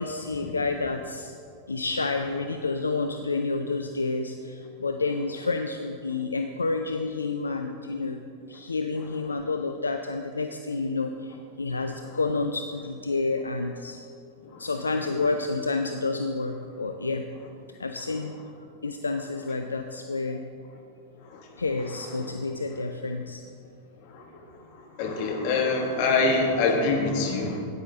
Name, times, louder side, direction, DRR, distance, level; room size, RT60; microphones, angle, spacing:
voice 1, 0.0-1.3 1.7-8.2 8.5-14.0 14.6-17.3 17.8-18.4 18.8-20.4 21.6-23.4, left 3 dB, 75° left, 6 dB, 0.4 m, -29 dB
voice 2, 25.0-27.6, left 3 dB, 45° left, 1 dB, 1.5 m, -24 dB
9.6 x 9.2 x 3.7 m, 2.4 s
figure-of-eight pair, 90°, 0 cm